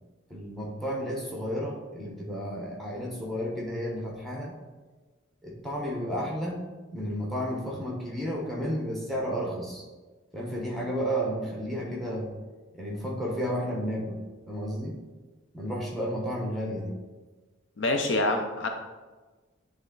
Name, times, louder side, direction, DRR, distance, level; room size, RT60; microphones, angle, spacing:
voice 1, 0.3-4.5 5.4-9.8 10.3-12.3 12.7-14.2 14.5-15.0 15.5-16.9, equal, ahead, -2 dB, 1.2 m, -32 dB
voice 2, 17.8-18.7, left 2 dB, 65° left, 5 dB, 0.7 m, -26 dB
9.3 x 3.7 x 3.9 m, 1.3 s
head